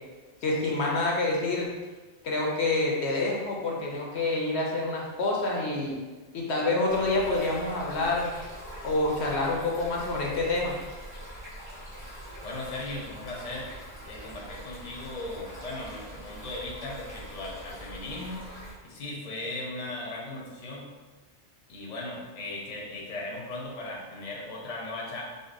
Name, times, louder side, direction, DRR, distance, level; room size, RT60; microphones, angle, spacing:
voice 1, 0.4-1.7 2.2-6.0 6.3-8.3 8.8-10.7, left 2 dB, 70° left, -2 dB, 0.9 m, -27 dB
Stream, 6.9-18.7, equal, 65° right, 1.5 m, -43 dB
voice 2, 12.4-13.7 14.1-18.4 18.8-20.9 21.7-25.2, left 2 dB, 45° left, -2 dB, 0.7 m, -37 dB
5.1 x 2.1 x 2.5 m, 1.3 s
omnidirectional pair, 1.2 m